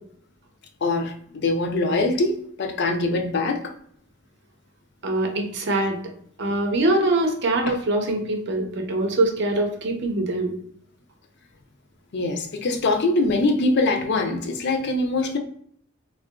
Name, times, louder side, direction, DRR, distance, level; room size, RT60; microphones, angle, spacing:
voice 1, 0.8-3.7 12.1-15.4, left 2 dB, 60° left, 0.4 m, -23 dB
voice 2, 5.0-6.0 6.4-10.6, right 2 dB, 60° right, 0.6 m, -23 dB
3.6 x 2.4 x 2.2 m
head